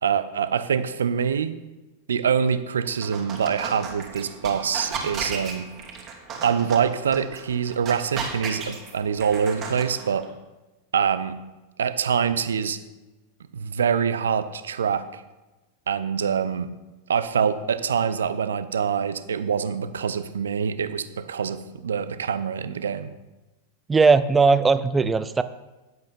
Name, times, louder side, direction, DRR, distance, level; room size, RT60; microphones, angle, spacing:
voice 1, 0.0-1.5 2.1-5.7 6.4-10.2 10.9-11.4 11.8-12.8 13.5-15.2 15.9-16.7 17.1-23.1, right 7 dB, 65° right, 12 dB, 0.7 m, -25 dB
sound 1, 2.8-10.3, right 5 dB, 30° right, 2.6 m, -35 dB
voice 2, 23.9-25.4, right 4 dB, 15° right, 13 dB, 0.6 m, -18 dB
11.0 x 7.9 x 5.4 m, 1.1 s
figure-of-eight pair, 90°, 0 cm